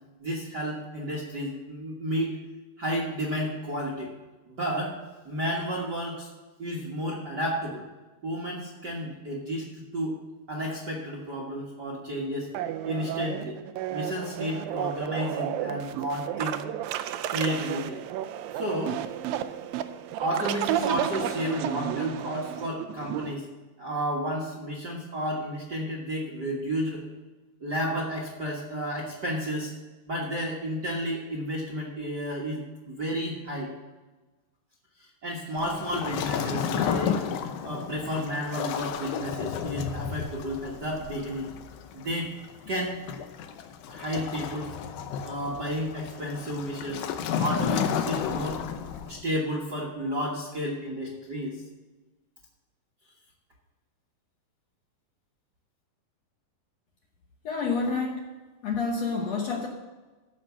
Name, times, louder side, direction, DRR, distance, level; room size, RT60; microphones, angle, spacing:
voice 1, 0.2-2.4 2.8-4.1 4.5-5.0 5.2-6.3 6.6-7.8 8.2-10.1 10.5-12.5 12.8-13.6 13.9-16.6 17.3-18.0 18.5-19.0 20.2-23.5 23.8-27.0 27.6-29.7 30.1-33.7 35.0-37.3 37.6-41.5 41.9-42.3 42.7-43.0 43.9-44.8 45.2-47.1 47.4-48.6 49.0-51.6, equal, 45° right, -3 dB, 1.4 m, -32 dB
sound 1, 12.5-23.3, right 11 dB, 85° right, 2.3 m, -32 dB
Waves surf, 35.6-49.2, left 8 dB, 90° left, 2.6 m, -32 dB
voice 2, 57.4-58.2 58.6-59.7, left 4 dB, 65° left, 0 dB, 1.8 m, -28 dB
14.0 x 5.4 x 7.1 m, 1.2 s
omnidirectional pair, 4.0 m